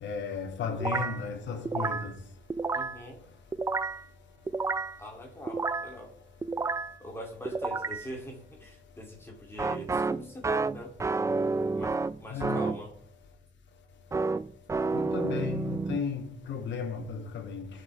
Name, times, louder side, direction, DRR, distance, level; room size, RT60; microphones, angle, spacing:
voice 1, 0.0-2.2 12.3-12.7 14.9-17.7, left 6 dB, 65° left, 2.2 m, -34 dB
sound 1, 0.8-1.2 1.7-2.1 2.5-3.0 3.5-4.0 4.5-5.0 5.5-5.9 6.4-7.0 7.5-8.1 9.6-12.8 14.1-16.0, right 3 dB, 15° right, 0.3 m, -30 dB
voice 2, 2.7-3.2 5.0-6.1 7.0-10.9 11.7-12.9, left 1 dB, 10° left, 2.6 m, -43 dB
17.5 x 6.6 x 3.3 m
cardioid pair, 90°, 20 cm